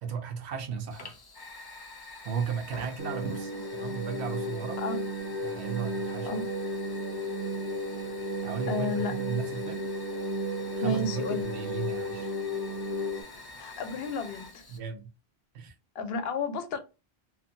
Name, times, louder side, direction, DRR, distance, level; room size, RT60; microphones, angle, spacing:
voice 1, 0.0-1.2 2.2-4.8 5.4-6.4 8.4-9.9 10.7-12.3 14.7-15.1 15.5-15.7, right 6 dB, 85° right, 0.9 m, -35 dB
Fire, 0.9-14.8, left 2 dB, 35° left, 0.4 m, -47 dB
sound 1, 3.0-13.2, equal, 15° right, 0.5 m, -33 dB
voice 2, 8.7-9.1 10.8-11.5 13.6-14.6 15.9-16.8, left 3 dB, 70° left, 0.8 m, -32 dB
2.6 x 2.4 x 2.5 m
omnidirectional pair, 1.1 m